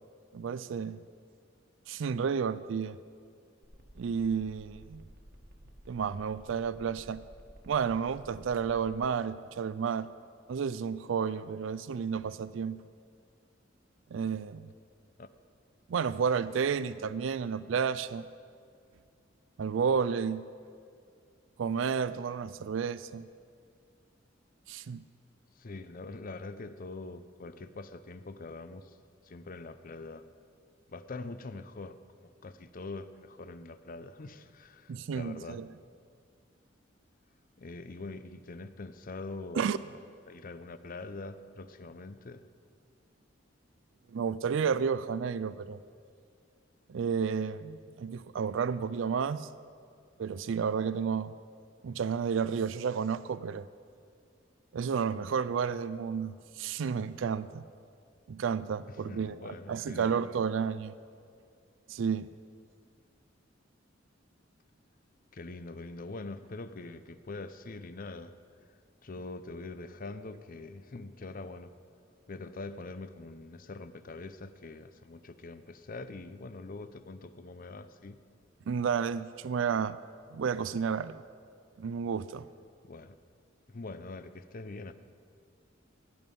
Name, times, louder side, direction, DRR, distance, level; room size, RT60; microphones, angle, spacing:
voice 1, 0.3-1.0 1.9-3.0 4.0-5.0 5.9-7.2 7.7-10.1 10.5-12.8 14.1-14.7 15.9-18.3 19.6-20.4 21.6-23.3 24.7-25.1 34.9-35.7 39.5-39.8 44.1-45.8 46.9-49.5 50.2-51.3 51.8-53.7 54.7-57.6 58.3-59.4 59.7-60.9 61.9-62.3 78.7-80.0 80.3-81.2 81.8-82.5, right 6 dB, 80° right, 16 dB, 0.4 m, -31 dB
sound 1, 3.6-9.1, equal, 55° right, 1.6 m, -53 dB
voice 2, 25.6-29.0 29.2-30.2 30.9-35.6 37.6-39.7 40.3-42.4 58.9-60.2 65.3-68.4 69.0-71.7 72.3-78.2 82.8-83.2 83.7-84.9, left 3 dB, 45° left, 12 dB, 0.6 m, -43 dB
16.5 x 11.0 x 5.3 m, 2.2 s
head